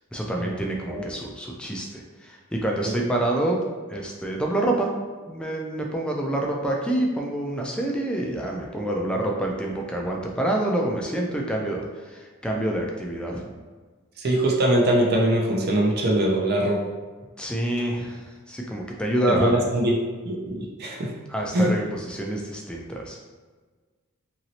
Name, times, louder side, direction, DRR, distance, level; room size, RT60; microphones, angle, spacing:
voice 1, 0.1-3.6 3.9-4.9 5.3-13.4 17.4-19.5 21.3-23.2, right 1 dB, 5° left, 0 dB, 0.3 m, -27 dB
voice 2, 14.2-16.8 19.4-19.9 20.3-21.1 21.5-21.7, right 1 dB, 50° right, -1 dB, 0.5 m, -22 dB
2.9 x 2.7 x 2.8 m, 1.4 s
head